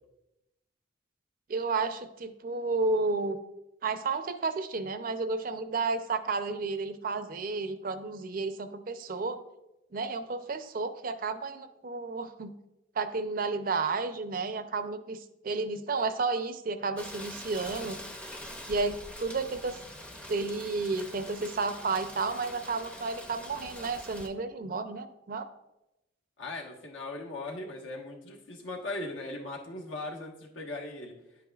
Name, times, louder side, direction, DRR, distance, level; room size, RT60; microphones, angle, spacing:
voice 1, 1.5-3.4 3.8-9.4 9.9-12.5 12.9-18.0 18.7-19.8 20.3-25.5, right 3 dB, 45° right, 10 dB, 0.5 m, -32 dB
Rain, 17.0-24.3, left 1 dB, 5° left, 0.6 m, -44 dB
voice 2, 26.4-31.1, left 2 dB, 75° left, 0 dB, 1.3 m, -39 dB
10.0 x 8.2 x 2.3 m, 0.92 s
head